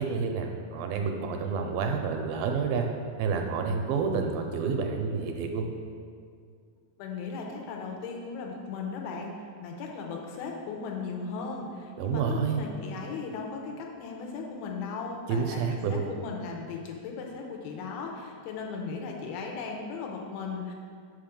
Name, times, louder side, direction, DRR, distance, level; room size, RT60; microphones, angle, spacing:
voice 1, 0.0-2.9 3.2-5.7 12.0-12.6 15.3-16.0, right 5 dB, 80° right, 3 dB, 2.3 m, -29 dB
voice 2, 7.0-20.7, left 4 dB, 90° left, 1 dB, 2.6 m, -37 dB
5.9 x 5.8 x 5.1 m, 2.1 s
omnidirectional pair, 4.4 m